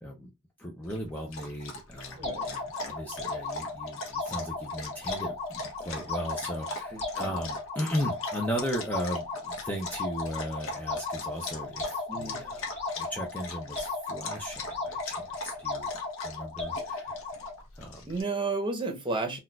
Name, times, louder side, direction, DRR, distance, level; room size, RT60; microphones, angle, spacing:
voice 1, 0.6-12.7 13.0-15.9 16.2-17.2 17.7-18.1, equal, 10° left, 0.4 m, -36 dB
Dog, 0.8-18.2, left 2 dB, 65° left, 0.8 m, -42 dB
sound 1, 2.2-17.6, left 3 dB, 30° left, 1.2 m, -36 dB
voice 2, 2.2-2.5 6.9-7.3 12.1-12.4 18.1-19.4, right 3 dB, 25° right, 0.8 m, -32 dB
4.0 x 2.3 x 2.3 m
head